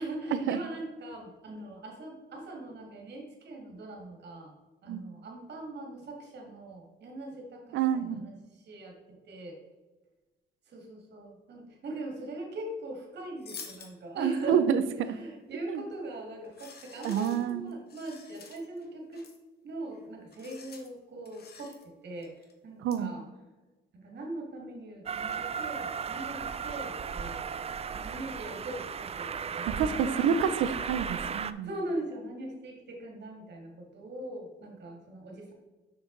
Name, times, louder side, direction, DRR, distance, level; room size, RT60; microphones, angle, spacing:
voice 1, 0.0-4.5 4.8-9.6 10.7-14.6 15.0-19.2 19.6-21.7 22.0-23.3 23.9-27.5 27.9-30.5 31.6-35.5, right 1 dB, 60° right, 1 dB, 2.3 m, -41 dB
voice 2, 7.7-8.2 14.2-14.8 15.1-15.2 15.7-15.8 17.0-17.6 22.8-23.1 29.7-31.7, right 8 dB, 80° right, 12 dB, 0.6 m, -28 dB
sound 1, 13.4-13.9 15.8-16.0 16.4-18.9 19.1-19.4 19.8-20.0 20.3-20.9 21.3-21.9 22.2-22.5 22.9-23.0, left 6 dB, 50° left, 1.2 m, -49 dB
Train, 25.1-31.5, right 6 dB, 30° right, 0.4 m, -35 dB
6.2 x 6.1 x 4.0 m, 1.2 s
cardioid pair, 90°, 20 cm